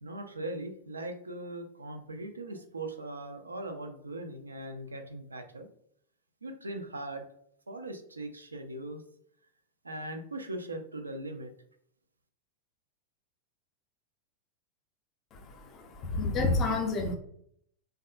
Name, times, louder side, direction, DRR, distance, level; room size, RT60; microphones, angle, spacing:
voice 1, 0.0-5.7 6.4-7.2 7.7-9.0 9.8-11.5, right 1 dB, 80° right, 5 dB, 0.4 m, -40 dB
voice 2, 15.3-17.2, left 3 dB, 30° left, 4 dB, 0.6 m, -30 dB
3.3 x 2.3 x 2.3 m, 0.67 s
figure-of-eight pair, 90°, 0 cm